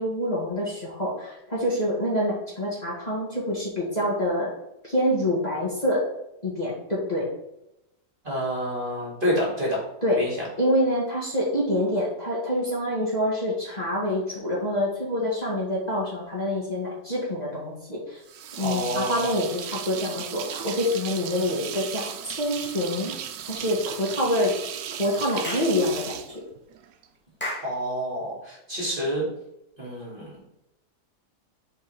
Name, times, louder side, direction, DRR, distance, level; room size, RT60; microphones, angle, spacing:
voice 1, 0.0-4.5 4.8-6.0 6.4-7.3 10.0-10.2 10.6-18.2 18.6-23.1 23.5-24.5 25.0-26.4, left 1 dB, 25° left, -6 dB, 2.2 m, -26 dB
voice 2, 8.2-9.8 10.2-10.5 18.6-19.3 27.6-29.3 29.8-30.3, equal, 30° right, -5 dB, 2.4 m, -28 dB
sound 1, 18.2-27.0, right 9 dB, 90° right, 1.3 m, -36 dB
Clapping / Chirp tweet, 25.4-25.8 27.4-27.7, left 1 dB, 5° left, 1.5 m, -32 dB
5.6 x 4.5 x 5.3 m, 0.85 s
omnidirectional pair, 1.8 m